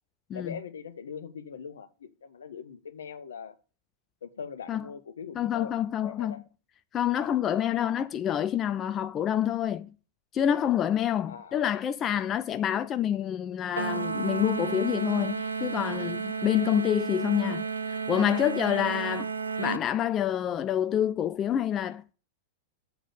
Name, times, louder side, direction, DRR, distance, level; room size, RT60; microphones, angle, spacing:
voice 1, 0.3-3.5 4.2-5.8 6.1-6.4 11.3-11.6 13.8-14.0, left 7 dB, 75° left, 1.1 m, -41 dB
voice 2, 5.4-6.3 6.9-9.9 10.3-19.3 19.6-22.1, left 10 dB, 30° left, 0.4 m, -27 dB
sound 1, 13.8-19.8, right 5 dB, 85° right, 0.5 m, -32 dB
8.2 x 4.1 x 6.5 m
figure-of-eight pair, 100°, 0 cm